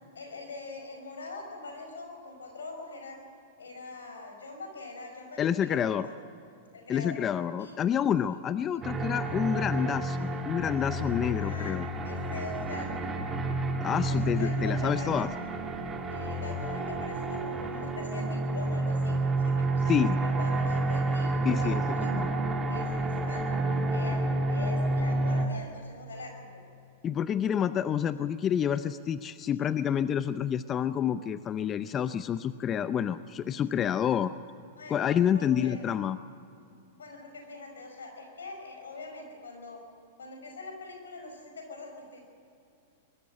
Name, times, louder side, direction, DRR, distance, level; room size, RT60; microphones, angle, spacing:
voice 1, 0.1-3.2 3.6-6.1 6.7-7.2 7.6-7.8 8.7-9.1 11.4-13.2 14.1-15.3 16.1-22.1 22.7-24.2 24.5-26.6 34.8-35.1 35.3-35.8 37.0-39.8 40.2-42.2, left 3 dB, 85° left, 3 dB, 5.5 m, -43 dB
voice 2, 5.4-6.1 6.9-11.9 13.8-15.3 19.9-20.2 21.4-21.8 22.1-22.3 27.0-34.3 34.9-36.2, left 9 dB, 30° left, 13 dB, 0.6 m, -28 dB
sound 1, 8.8-25.5, right 2 dB, 20° right, 2.3 m, -29 dB
23.0 x 13.0 x 8.9 m, 2.6 s
hypercardioid pair, 110°, 0 cm